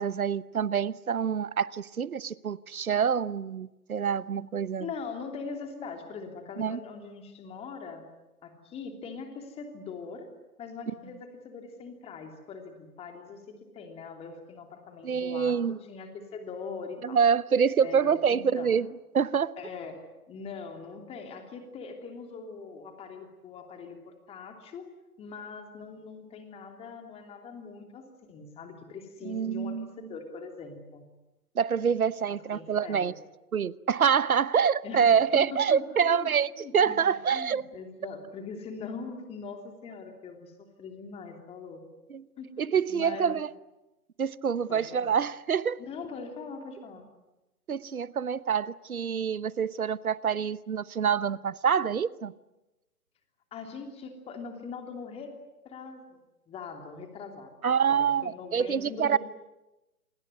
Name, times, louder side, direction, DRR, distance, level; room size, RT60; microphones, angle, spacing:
voice 1, 0.0-4.9 6.6-6.8 15.0-15.8 17.0-18.9 19.1-19.5 29.2-29.9 31.6-33.1 33.5-37.6 42.1-42.2 42.6-43.5 44.2-45.8 47.7-52.3 57.6-59.2, right 7 dB, 70° right, 1.0 m, -26 dB
voice 2, 4.8-8.0 8.4-10.3 10.6-17.2 17.8-18.8 19.6-20.0 20.3-24.9 25.2-31.0 32.3-33.1 34.8-41.8 42.4-43.4 44.7-45.1 45.8-47.1 53.5-55.3 55.6-56.2 56.5-57.5 57.9-59.2, left 5 dB, 15° left, 3.0 m, -42 dB
28.0 x 20.5 x 9.6 m
figure-of-eight pair, 135°, 45 cm